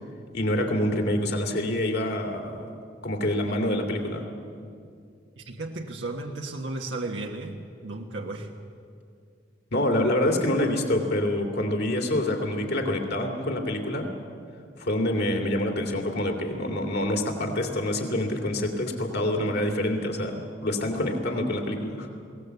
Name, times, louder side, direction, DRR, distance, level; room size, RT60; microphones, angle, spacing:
voice 1, 0.3-2.7 3.0-4.2 9.7-14.1 14.8-22.1, left 1 dB, 65° left, 3 dB, 2.7 m, -26 dB
voice 2, 5.4-7.5 7.8-8.5, right 2 dB, 85° right, 1 dB, 1.4 m, -34 dB
21.5 x 18.0 x 8.2 m, 2.4 s
head